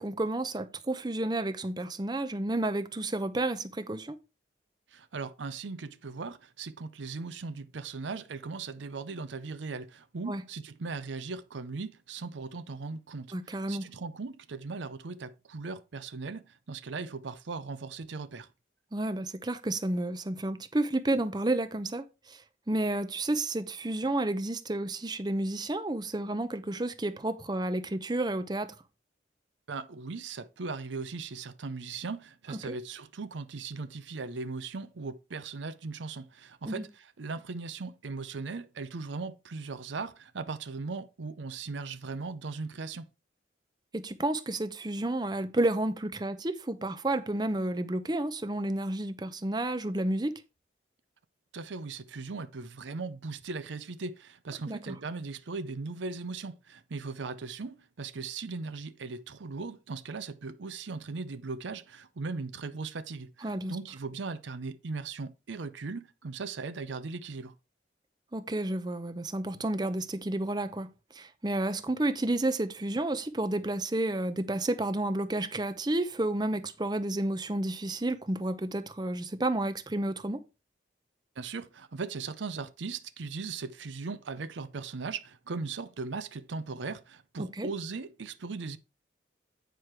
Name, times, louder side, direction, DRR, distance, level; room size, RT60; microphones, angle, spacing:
voice 1, 0.0-4.1 10.3-10.4 13.3-13.9 18.9-28.7 32.5-32.6 36.7-36.8 43.9-50.4 54.7-55.0 63.4-63.8 68.3-80.4 87.4-87.7, right 1 dB, 20° right, 0.6 m, -31 dB
voice 2, 4.9-18.5 29.7-43.1 51.5-67.5 81.4-88.8, right 4 dB, 80° right, 0.6 m, -38 dB
9.1 x 4.8 x 4.5 m
head